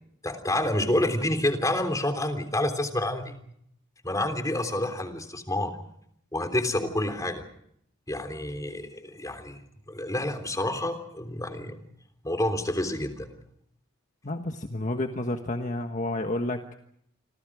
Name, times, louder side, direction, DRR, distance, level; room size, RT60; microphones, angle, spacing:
voice 1, 0.2-3.3 4.0-5.8 6.3-7.4 8.1-9.6 9.9-11.8 12.2-13.3, left 1 dB, 15° left, 7 dB, 3.4 m, -28 dB
voice 2, 14.2-16.6, left 1 dB, 40° left, 5 dB, 1.4 m, -30 dB
28.5 x 26.0 x 5.0 m, 0.70 s
head